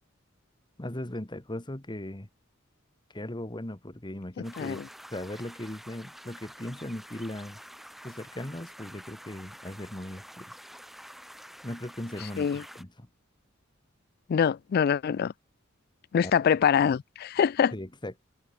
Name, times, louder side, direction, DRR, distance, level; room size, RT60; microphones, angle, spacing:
voice 1, 0.8-2.3 3.1-4.8 5.1-7.6 8.0-10.5 11.6-13.1 16.2-16.3 17.7-18.3, left 1 dB, 20° left, 1.8 m, -38 dB
sound 1, 4.4-12.8, equal, ahead, 2.4 m, -48 dB
voice 2, 14.3-15.3 16.1-17.7, left 7 dB, 50° left, 0.3 m, -24 dB
head